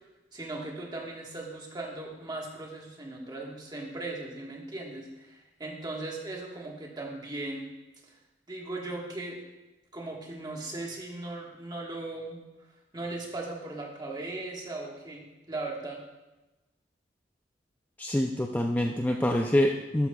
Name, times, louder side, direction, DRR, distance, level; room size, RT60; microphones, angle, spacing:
voice 1, 0.3-7.7 8.5-9.4 9.9-12.4 12.9-16.0, right 2 dB, 25° right, -1 dB, 1.4 m, -38 dB
voice 2, 18.0-20.1, left 1 dB, 10° left, 2 dB, 0.4 m, -26 dB
12.5 x 9.0 x 2.3 m, 1.1 s
head